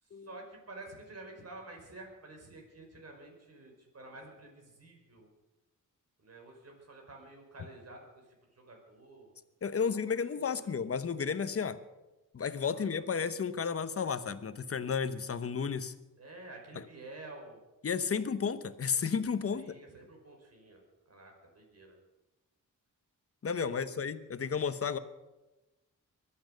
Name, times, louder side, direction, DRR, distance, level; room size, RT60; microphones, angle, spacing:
voice 1, 0.0-5.3 6.2-9.3 9.8-10.7 12.7-13.0 16.2-17.6 19.5-22.0 23.6-23.9, right 2 dB, 50° right, 2 dB, 5.2 m, -50 dB
voice 2, 9.6-11.8 12.3-15.9 17.8-19.7 23.4-25.0, left 6 dB, 45° left, 12 dB, 1.0 m, -32 dB
23.0 x 8.9 x 6.6 m, 1.1 s
cardioid pair, 95°, 32 cm